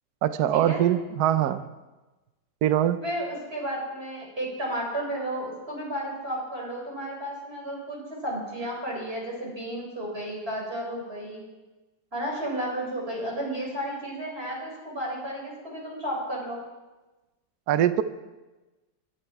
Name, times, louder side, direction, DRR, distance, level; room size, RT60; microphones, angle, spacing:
voice 1, 0.2-1.6 2.6-3.0 17.7-18.0, right 11 dB, 65° right, 12 dB, 1.2 m, -22 dB
voice 2, 3.0-11.4 12.1-16.6, right 1 dB, 30° right, -2 dB, 5.5 m, -33 dB
22.0 x 12.5 x 4.7 m, 1.1 s
omnidirectional pair, 2.0 m